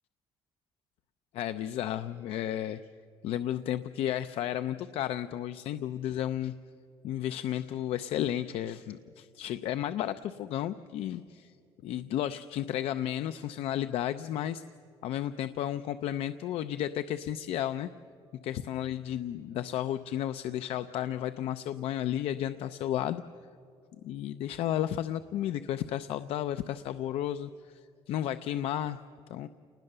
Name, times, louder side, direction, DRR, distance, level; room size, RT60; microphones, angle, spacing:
voice 1, 1.3-2.8 3.2-6.5 7.0-11.5 11.8-14.6 15.0-17.9 18.4-23.2 24.0-27.8 28.1-29.0 29.3-29.5, left 11 dB, 75° left, 11 dB, 0.5 m, -33 dB
28.5 x 19.5 x 6.7 m, 2.3 s
cardioid pair, 150°, 10 cm